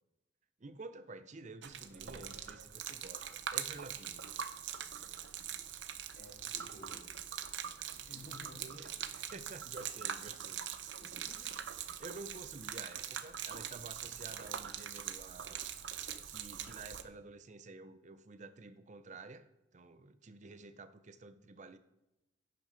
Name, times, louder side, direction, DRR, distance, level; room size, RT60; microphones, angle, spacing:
voice 1, 0.6-3.2 3.5-4.3 8.6-10.7 11.1-11.5 12.0-15.7 16.3-21.8, right 3 dB, 40° right, 11 dB, 0.6 m, -51 dB
Gurgling / Liquid, 1.6-17.0, right 9 dB, 85° right, 0.7 m, -43 dB
voice 2, 6.1-7.0 7.9-8.7 11.0-11.5 12.7-12.8, left 1 dB, 55° left, -4 dB, 4.0 m, -54 dB
11.0 x 6.0 x 5.1 m, 0.95 s
head